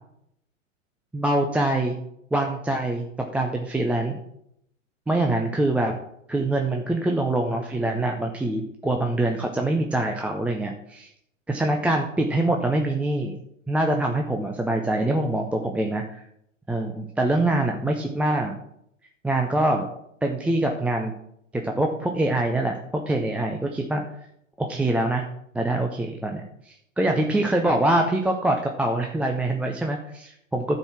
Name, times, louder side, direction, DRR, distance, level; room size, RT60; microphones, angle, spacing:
voice 1, 1.1-2.0 2.3-3.1 3.3-4.2 5.1-5.9 6.3-11.1 11.5-13.3 13.7-16.2 16.7-18.5 19.2-19.9 20.2-21.1 21.5-22.8 23.1-24.0 24.6-25.3 25.5-30.8, right 1 dB, 5° right, 2 dB, 0.5 m, -24 dB
11.5 x 4.7 x 5.9 m, 0.75 s
hypercardioid pair, 115°, 39 cm